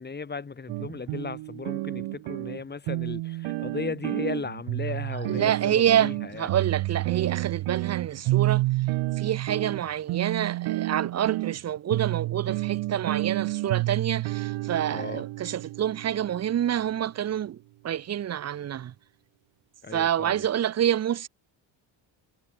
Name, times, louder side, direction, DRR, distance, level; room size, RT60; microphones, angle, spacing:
voice 1, 0.0-6.6 14.9-15.2 19.8-20.5, left 5 dB, 20° left, 5.1 m, -36 dB
sound 1, 0.7-16.9, right 19 dB, 80° right, 1.1 m, -30 dB
voice 2, 5.3-8.6 9.2-17.6 17.8-18.9 19.9-21.3, right 10 dB, 35° right, 0.7 m, -27 dB
cardioid pair, 165°, 48 cm